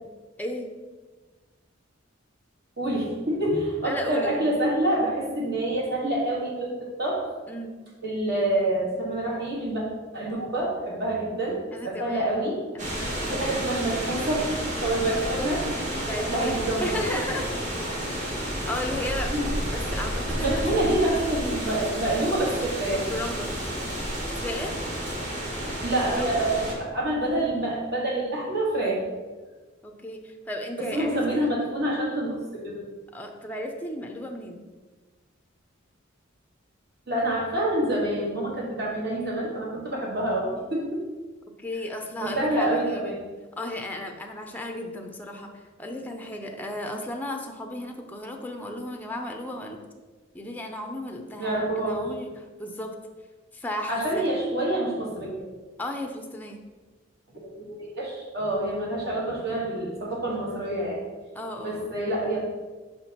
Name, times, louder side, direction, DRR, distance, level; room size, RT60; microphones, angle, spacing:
voice 1, 2.8-7.3 8.0-9.8 10.1-11.6 11.8-12.6 13.2-14.5 14.8-15.7 16.2-17.2 19.3-19.5 19.9-20.0 20.3-23.1 25.8-26.6 26.9-29.0 30.9-32.8 37.1-41.0 42.2-43.2 51.4-52.1 53.9-55.5 57.5-61.0 61.6-62.4, right 1 dB, 55° right, -3 dB, 1.9 m, -27 dB
voice 2, 3.8-4.5 7.5-7.7 11.7-12.5 12.7-13.8 14.9-15.2 15.9-16.5 16.8-17.5 18.2-19.3 19.7-21.0 23.1-23.5 24.4-24.8 26.1-26.5 29.8-31.5 33.1-34.6 41.6-43.1 43.6-49.8 50.3-52.9 53.5-54.3 55.8-56.6 61.3-62.0, left 1 dB, 10° left, 3 dB, 0.5 m, -35 dB
sound 1, 12.8-26.7, equal, 40° right, 1.6 m, -31 dB
5.8 x 4.4 x 4.3 m, 1.3 s
head